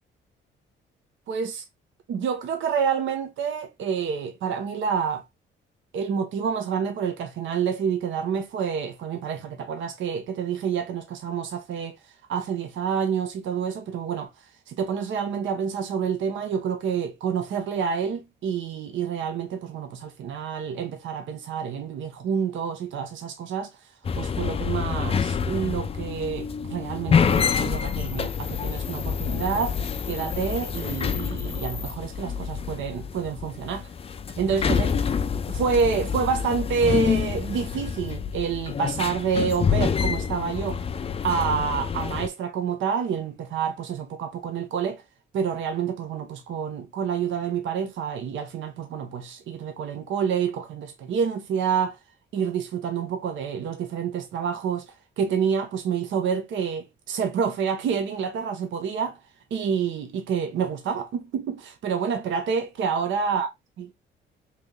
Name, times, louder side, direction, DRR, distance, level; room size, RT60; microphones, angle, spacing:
voice 1, 1.3-1.6 2.1-5.2 5.9-12.0 12.3-14.3 14.7-23.7 24.1-29.8 30.1-33.9 34.4-34.9 35.5-40.8 41.2-45.0 45.3-52.0 52.3-54.9 55.2-59.2 59.5-63.5 63.8-63.9, right 6 dB, 70° right, 0.8 m, -28 dB
sound 1, 24.0-42.3, left 6 dB, 30° left, 0.4 m, -27 dB
3.3 x 2.9 x 3.6 m
cardioid pair, 90°, 20 cm